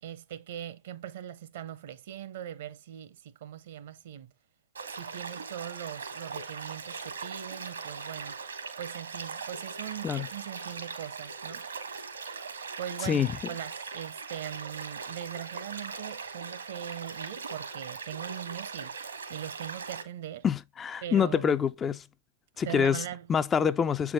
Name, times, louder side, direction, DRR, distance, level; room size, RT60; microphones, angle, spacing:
voice 1, 0.0-4.3 4.9-8.4 8.8-11.7 12.8-19.0 19.3-20.4 21.0-21.6 22.6-23.3, right 10 dB, 55° right, 0.8 m, -41 dB
sound 1, 4.7-20.0, right 5 dB, 75° right, 1.4 m, -40 dB
voice 2, 20.4-22.0 22.6-23.0 23.3-24.1, left 7 dB, 20° left, 0.3 m, -26 dB
7.4 x 4.7 x 3.4 m
figure-of-eight pair, 110°, 0 cm